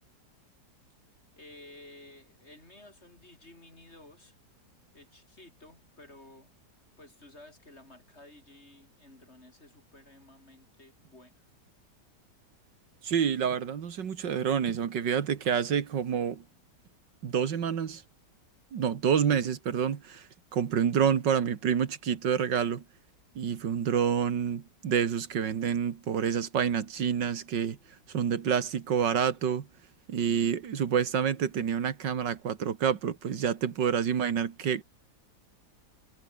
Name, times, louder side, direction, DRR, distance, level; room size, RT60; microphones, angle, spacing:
voice 1, 1.4-4.4 4.9-6.5 7.0-11.5, left 2 dB, 35° left, 5.7 m, -53 dB
voice 2, 13.0-16.4 17.2-18.0 18.7-20.3 20.5-22.8 23.4-27.8 28.1-29.7 30.1-34.8, right 7 dB, 85° right, 2.3 m, -28 dB
omnidirectional pair, 1.9 m